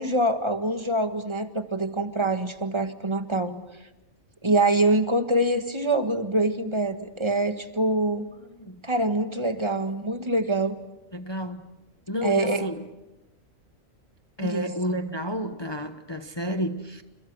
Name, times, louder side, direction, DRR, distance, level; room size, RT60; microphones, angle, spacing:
voice 1, 0.0-3.6 4.4-8.3 8.8-10.8 12.2-12.7 14.4-14.7, right 2 dB, 20° right, 1.7 m, -25 dB
voice 2, 11.1-11.7 12.1-12.9 14.4-17.0, equal, 20° left, 1.1 m, -30 dB
30.0 x 29.0 x 6.3 m
omnidirectional pair, 1.4 m